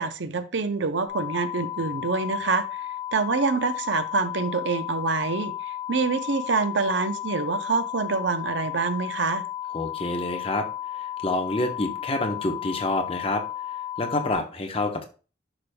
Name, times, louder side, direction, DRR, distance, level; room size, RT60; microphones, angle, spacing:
voice 1, 0.0-2.8 3.1-9.4, right 4 dB, 70° right, 11 dB, 0.7 m, -26 dB
sound 1, 1.1-14.3, left 12 dB, 30° right, 1.9 m, -34 dB
voice 2, 9.7-10.7 10.9-13.4 14.0-15.0, left 2 dB, 30° left, 4 dB, 1.0 m, -27 dB
10.5 x 5.2 x 2.3 m, 0.35 s
head